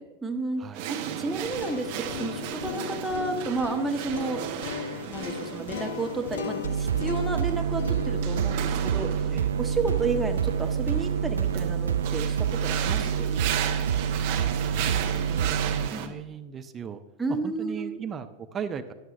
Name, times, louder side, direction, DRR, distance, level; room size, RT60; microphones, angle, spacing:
voice 1, 0.0-4.4 5.0-9.1 9.6-13.4 15.9-16.1 17.2-18.0, right 3 dB, 5° right, 2 dB, 1.4 m, -32 dB
sound 1, 0.7-16.1, right 9 dB, 50° right, 1.0 m, -35 dB
sound 2, 1.4-11.4, left 7 dB, 60° left, 0.5 m, -38 dB
sound 3, 6.6-15.9, right 8 dB, 70° right, 0.4 m, -27 dB
voice 2, 14.1-14.9 15.3-17.0 17.4-18.9, right 7 dB, 25° right, 9 dB, 0.6 m, -38 dB
13.0 x 11.0 x 2.7 m, 1.2 s
figure-of-eight pair, 90°, 0 cm